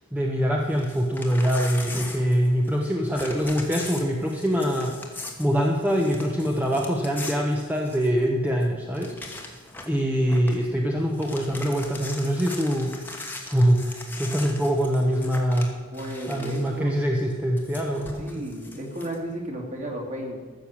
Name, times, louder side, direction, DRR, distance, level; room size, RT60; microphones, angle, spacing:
voice 1, 0.1-5.0 5.4-15.8 16.3-18.4, equal, 5° right, 0 dB, 0.9 m, -24 dB
Crumpling crinkling / Tearing, 0.7-2.9 3.1-8.2 8.6-8.7 8.9-10.0 10.3-10.6 11.0-16.8 17.6-19.2, left 2 dB, 10° left, 1.3 m, -39 dB
voice 2, 15.9-17.0 18.2-20.4, right 1 dB, 35° right, 0 dB, 2.4 m, -33 dB
14.0 x 6.8 x 7.2 m, 1.5 s
head